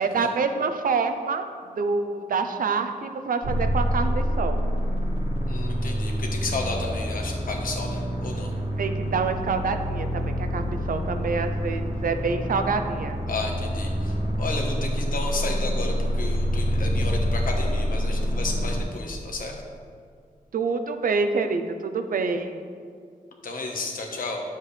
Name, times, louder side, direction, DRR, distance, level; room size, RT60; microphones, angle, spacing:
voice 1, 0.0-1.5 1.7-4.6 8.8-13.2 20.5-22.6, right 4 dB, 75° right, 7 dB, 0.6 m, -26 dB
sound 1, 3.4-18.8, equal, 45° right, 1.4 m, -27 dB
voice 2, 5.5-8.5 13.3-19.5 23.4-24.4, left 3 dB, 75° left, 1 dB, 1.2 m, -32 dB
10.5 x 7.4 x 3.3 m, 2.2 s
wide cardioid pair, 175°, 15 cm